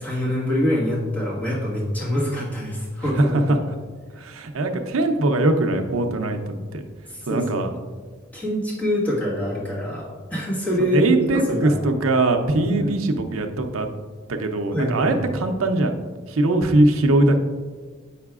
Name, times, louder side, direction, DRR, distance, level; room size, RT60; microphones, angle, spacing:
voice 1, 0.0-3.6 7.1-7.6 8.3-11.7 12.7-12.9 14.7-15.2, equal, 10° left, -7 dB, 1.5 m, -25 dB
voice 2, 3.0-3.6 4.2-6.8 7.3-7.7 10.9-13.9 14.3-15.9 16.3-17.4, right 2 dB, 90° right, 5 dB, 0.6 m, -21 dB
8.2 x 5.7 x 2.4 m, 1.4 s
head